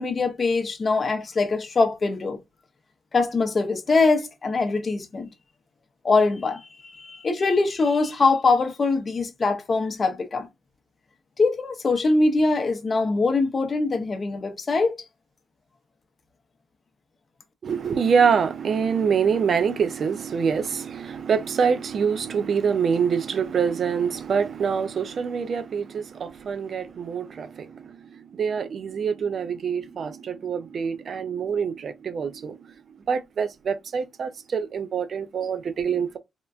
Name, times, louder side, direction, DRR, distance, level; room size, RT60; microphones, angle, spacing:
voice 1, 0.0-2.4 3.1-5.3 6.0-10.5 11.4-15.0, left 3 dB, 35° left, 0.6 m, -23 dB
voice 2, 17.6-28.0 28.3-32.6 33.1-36.2, right 6 dB, 50° right, 0.4 m, -25 dB
3.6 x 2.2 x 2.3 m
cardioid pair, 135°, 0 cm